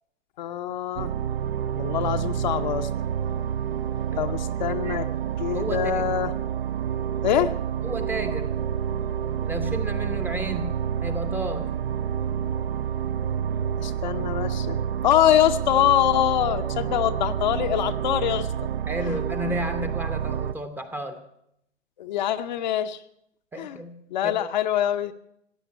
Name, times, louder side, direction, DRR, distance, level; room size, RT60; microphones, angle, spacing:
voice 1, 0.4-1.1 1.8-2.9 4.2-5.1 5.4-6.3 7.2-7.5 13.8-14.8 15.0-18.5 22.0-23.0 23.6-23.8 24.1-25.1, left 11 dB, 35° left, 8 dB, 0.7 m, -24 dB
sound 1, 1.0-20.5, right 8 dB, 50° right, 0.6 m, -28 dB
voice 2, 4.7-5.1 5.5-6.0 7.8-8.5 9.4-11.7 18.9-21.2 23.5-24.0 24.2-24.5, right 1 dB, 5° right, 7 dB, 0.7 m, -32 dB
15.5 x 8.7 x 9.5 m, 0.78 s
figure-of-eight pair, 120°, 37 cm